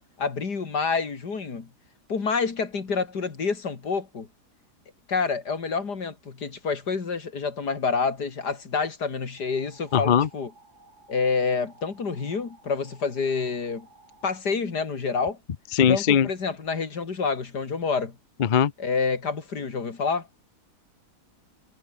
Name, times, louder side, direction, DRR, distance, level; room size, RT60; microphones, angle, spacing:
voice 1, 0.0-1.7 2.1-4.3 5.1-10.5 11.1-13.9 14.2-15.4 15.9-18.1 18.8-20.3, left 5 dB, 85° left, 3.2 m, -28 dB
sound 1, 9.4-14.4, right 2 dB, 75° right, 6.5 m, -55 dB
voice 2, 9.9-10.3 15.7-16.3 18.4-18.7, left 8 dB, 45° left, 0.7 m, -20 dB
omnidirectional pair, 1.7 m